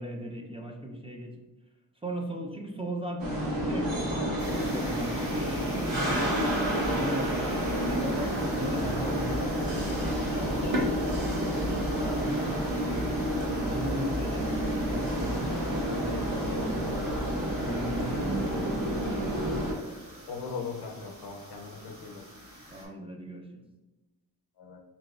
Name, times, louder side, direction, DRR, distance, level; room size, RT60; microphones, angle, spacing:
voice 1, 0.0-1.4 2.0-3.3 3.7-7.5 7.9-9.6 10.0-11.0 11.5-19.7 22.7-23.6, right 1 dB, 15° right, 0 dB, 0.4 m, -38 dB
sound 1, 3.2-19.7, equal, 65° right, 1.2 m, -29 dB
sound 2, 4.4-22.8, equal, 35° right, 1.4 m, -45 dB
voice 2, 20.3-22.2 24.6-24.8, left 5 dB, 75° left, 2 dB, 0.7 m, -39 dB
5.1 x 2.9 x 2.3 m, 1.1 s
wide cardioid pair, 120°, 38 cm